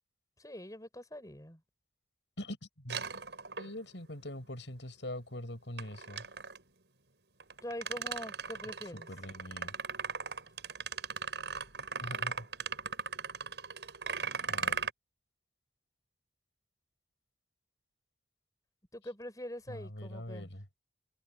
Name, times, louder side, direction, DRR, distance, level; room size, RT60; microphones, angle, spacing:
voice 1, 0.4-1.6 7.6-9.1 18.9-20.5, left 1 dB, 20° left, 7.0 m, -44 dB
sound 1, 2.9-4.0 5.8-6.6 7.4-14.9, right 5 dB, 80° right, 6.1 m, -38 dB
voice 2, 3.6-6.2 8.9-9.7 12.0-12.5 14.5-14.8 19.7-20.6, left 1 dB, 85° left, 7.7 m, -43 dB
head